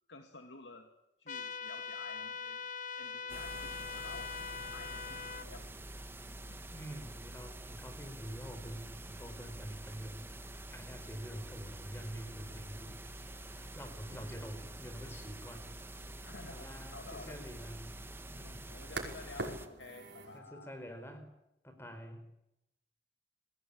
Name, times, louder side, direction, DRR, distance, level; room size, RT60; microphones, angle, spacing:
voice 1, 0.1-0.9 1.2-2.7 3.0-4.3 4.7-5.8 6.4-6.6 14.1-14.4 16.2-17.4 18.4-20.8, left 3 dB, 85° left, 5 dB, 2.4 m, -52 dB
sound 1, 1.3-5.5, left 5 dB, 45° left, 0.9 m, -42 dB
sound 2, 3.3-19.7, right 1 dB, 15° right, 1.4 m, -47 dB
voice 2, 6.7-15.7 16.5-17.9 18.3-18.6 20.3-21.3 21.6-22.2, equal, 15° left, 7 dB, 4.7 m, -47 dB
sound 3, 11.7-20.4, right 2 dB, 85° right, 5.5 m, -49 dB
29.0 x 21.5 x 8.7 m, 0.86 s
head